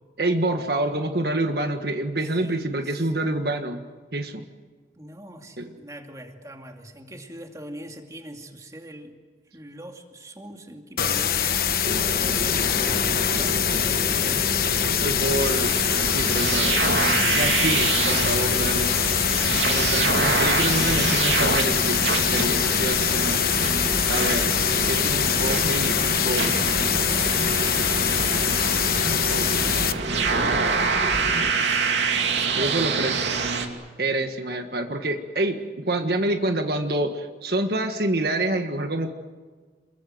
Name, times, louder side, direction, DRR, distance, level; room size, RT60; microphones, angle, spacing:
voice 1, 0.2-3.8 4.1-4.5 5.6-5.7 15.0-15.7 16.1-16.8 17.3-19.0 19.6-23.4 24.1-24.6 24.9-26.7 29.1-29.8 32.5-33.2 34.0-39.1, right 1 dB, 60° right, 5 dB, 1.6 m, -27 dB
voice 2, 2.4-3.1 5.0-9.1 9.5-12.0 12.6-14.4 18.0-18.6 31.5-33.0, right 1 dB, 20° right, 3 dB, 2.5 m, -42 dB
sound 1, 11.0-29.9, left 8 dB, 55° left, 1.2 m, -23 dB
sound 2, 11.8-31.5, equal, 45° right, 1.7 m, -32 dB
sound 3, 15.4-33.7, right 5 dB, 90° right, 2.9 m, -26 dB
28.0 x 23.0 x 7.9 m, 1.5 s
head